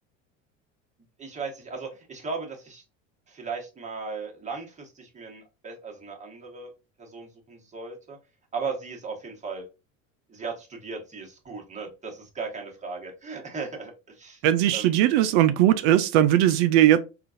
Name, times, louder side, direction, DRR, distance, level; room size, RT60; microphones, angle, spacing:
voice 1, 1.2-2.8 3.3-6.7 7.0-8.2 8.5-9.7 10.3-14.4 14.7-14.9, right 4 dB, 20° right, 1.2 m, -37 dB
voice 2, 14.4-17.0, right 12 dB, 65° right, 0.5 m, -19 dB
3.7 x 2.5 x 2.5 m
hypercardioid pair, 95°, 39 cm